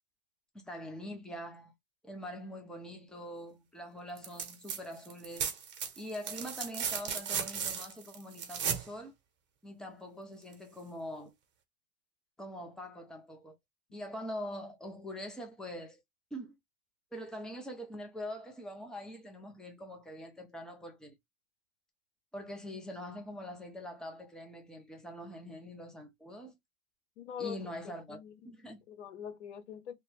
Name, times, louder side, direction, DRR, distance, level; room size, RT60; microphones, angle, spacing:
voice 1, 0.5-1.7 2.0-5.5 6.0-9.1 9.6-11.3 12.4-13.5 13.9-16.0 16.3-16.6 17.1-21.1 22.3-26.5 27.4-28.2 28.4-28.8, equal, ahead, 0.9 m, -43 dB
sound 1, 4.2-4.8 5.1-8.9 10.5-10.6, right 7 dB, 35° right, 1.3 m, -36 dB
voice 2, 27.2-27.6 28.1-28.5 28.9-29.9, left 8 dB, 85° left, 1.0 m, -43 dB
2.8 x 2.6 x 3.4 m
hypercardioid pair, 115°, 34 cm